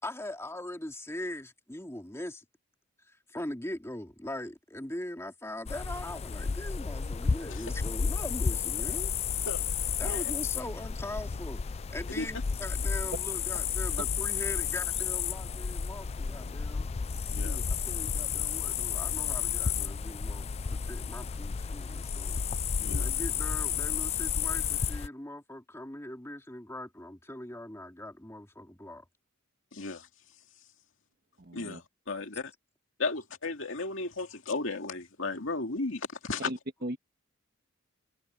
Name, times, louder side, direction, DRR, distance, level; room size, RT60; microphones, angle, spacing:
voice 1, 0.0-2.4 3.0-9.1 10.0-11.6 11.9-16.9 17.4-22.4 22.8-29.1, left 1 dB, 15° left, 2.3 m, -41 dB
sound 1, 5.7-25.1, left 6 dB, 30° left, 0.4 m, -32 dB
voice 2, 29.7-30.1 31.5-32.5 33.0-36.5, left 3 dB, 65° left, 2.5 m, -34 dB
voice 3, 31.4-31.8 36.4-37.0, right 1 dB, 50° right, 1.6 m, -37 dB
open air
head